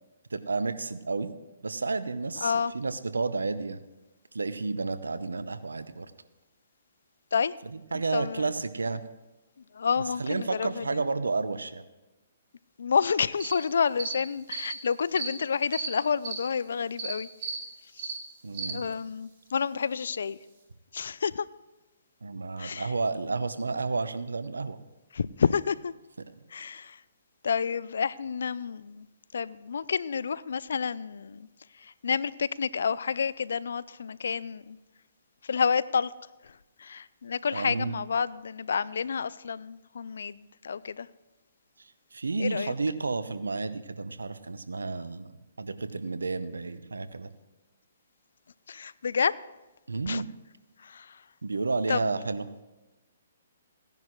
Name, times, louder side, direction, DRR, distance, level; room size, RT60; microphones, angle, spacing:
voice 1, 0.3-1.3 1.6-3.8 4.3-6.1 7.7-9.0 10.2-11.8 18.4-18.9 22.2-24.8 37.5-37.9 42.1-47.3 49.9-50.3 51.4-52.4, right 3 dB, 90° right, 13 dB, 0.7 m, -31 dB
voice 2, 2.4-2.7 7.3-7.5 7.9-8.5 9.7-11.0 12.8-17.3 18.0-18.1 18.7-20.4 20.9-21.5 22.6-22.9 25.1-25.9 26.5-27.0 27.4-29.1 29.3-31.5 31.8-34.8 35.4-36.1 36.4-36.5 36.8-41.1 42.4-42.7 48.7-49.3 50.1-50.2 50.8-51.2 51.9-52.1, left 6 dB, 70° left, 19 dB, 0.4 m, -29 dB
sound 1, 13.4-13.5 14.0-14.1 14.5-14.7 15.1-15.3 15.7-15.9 16.2-16.4 17.0-17.1 17.4-17.6 18.0-18.2 18.5-18.7, right 5 dB, 45° right, 3.2 m, -34 dB
16.5 x 10.5 x 3.1 m, 1.0 s
hypercardioid pair, 135°, 0 cm